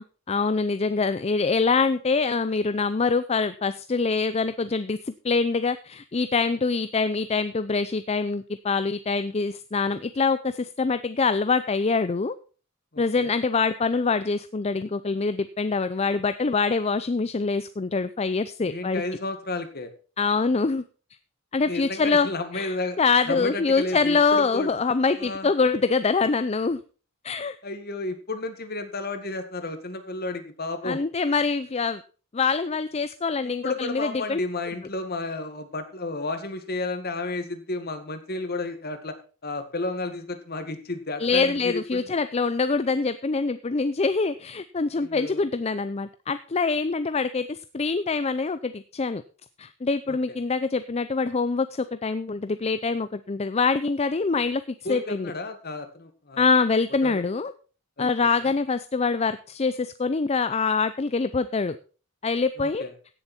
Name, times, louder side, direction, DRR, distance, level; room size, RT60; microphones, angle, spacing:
voice 1, 0.0-12.3 13.0-19.0 20.2-20.8 21.5-22.3 22.5-26.8 27.2-27.5 30.8-32.0 32.3-34.4 41.2-49.2 49.6-54.6 54.9-55.3 56.4-57.5 58.0-61.8 62.2-62.8, left 4 dB, 30° left, 12 dB, 0.5 m, -24 dB
voice 2, 12.9-13.3 18.6-19.9 21.7-23.0 23.3-24.7 25.2-25.5 27.6-31.0 33.4-39.2 39.4-42.1 44.9-45.5 50.1-50.4 54.9-56.5 57.0-57.2 58.0-58.1 58.4-58.5 62.6-62.9, left 2 dB, 50° left, 8 dB, 1.9 m, -32 dB
16.5 x 7.2 x 4.3 m, 0.37 s
head